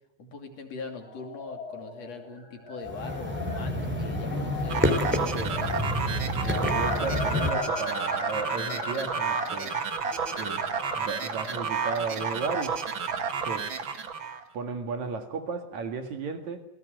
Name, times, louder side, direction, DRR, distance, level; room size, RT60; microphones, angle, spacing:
voice 1, 0.2-5.0, left 3 dB, 55° left, 4 dB, 3.9 m, -41 dB
sound 1, 1.0-13.4, left 5 dB, 30° left, 2.9 m, -39 dB
sound 2, 2.9-7.5, equal, 5° right, 2.7 m, -29 dB
sound 3, 4.7-14.4, right 6 dB, 45° right, 2.1 m, -31 dB
voice 2, 6.4-9.8 10.3-12.8 13.4-13.7 14.5-16.6, right 5 dB, 65° right, 6 dB, 3.5 m, -34 dB
28.0 x 19.0 x 7.9 m, 0.81 s
omnidirectional pair, 3.5 m